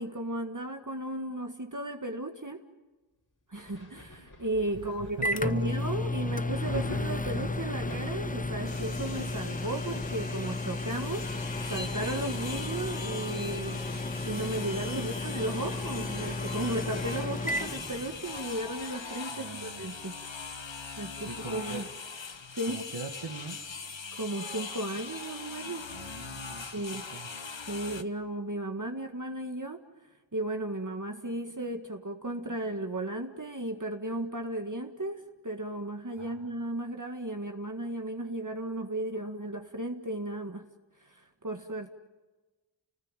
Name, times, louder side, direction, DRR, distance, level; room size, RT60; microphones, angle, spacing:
voice 1, 0.0-2.6 3.5-13.8 14.2-20.2 21.0-21.8 22.5-22.8 24.2-25.8 26.7-27.0 27.7-29.8 30.3-40.7 41.1-41.9, right 1 dB, 40° right, 4 dB, 1.8 m, -35 dB
Thunder, 3.5-14.9 15.3-16.8 17.1-17.2 17.8-19.1 20.5-20.6, left 2 dB, 40° left, 4.0 m, -46 dB
Microwave oven, 4.5-18.6, left 2 dB, 20° left, 0.8 m, -34 dB
voice 2, 4.7-5.6 15.0-15.3 19.3-19.8 21.2-21.8 22.6-23.7 25.9-26.7 26.9-27.3 36.2-36.5, right 4 dB, 70° right, 2 dB, 2.2 m, -42 dB
sound 1, 8.7-28.0, left 4 dB, 70° left, 1.4 m, -41 dB
30.0 x 19.5 x 9.1 m, 1.2 s
wide cardioid pair, 55°, 46 cm